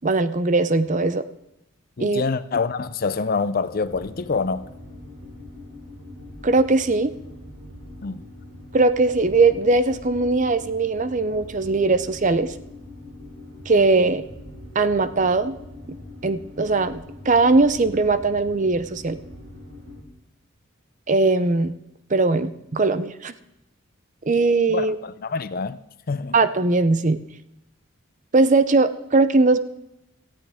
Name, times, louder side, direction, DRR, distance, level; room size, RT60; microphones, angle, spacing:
voice 1, 0.0-1.3 2.0-2.2 6.4-7.1 8.7-12.5 13.7-14.2 14.7-15.6 16.2-19.2 21.1-21.7 22.1-23.3 24.3-25.0 26.3-27.2 28.3-29.6, right 3 dB, 35° right, 0.6 m, -20 dB
voice 2, 2.0-4.7 8.0-8.2 24.7-25.8 26.1-26.3, left 4 dB, 45° left, 0.5 m, -26 dB
sound 1, 3.8-20.0, left 1 dB, 80° right, 5.9 m, -42 dB
18.0 x 14.0 x 3.5 m
head